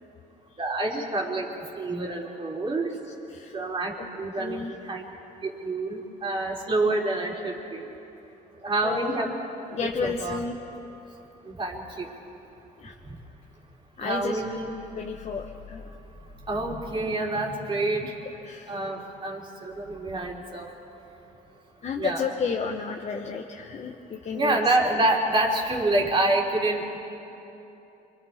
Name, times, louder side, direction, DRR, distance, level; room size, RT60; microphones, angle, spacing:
voice 1, 0.6-1.5 1.8-2.9 3.5-5.0 5.4-7.9 8.6-9.3 9.8-10.4 11.4-12.1 14.0-14.7 16.5-18.1 18.7-20.7 22.0-22.2 24.3-27.0, right 2 dB, 30° right, -1 dB, 3.6 m, -27 dB
voice 2, 4.4-4.7 8.8-9.3 9.7-10.6 12.8-12.9 14.0-14.4 15.0-15.8 18.4-18.8 21.8-24.6 24.9-25.0, left 5 dB, 40° left, 1 dB, 1.2 m, -32 dB
29.5 x 23.5 x 4.4 m, 2.9 s
cardioid pair, 110°, 17 cm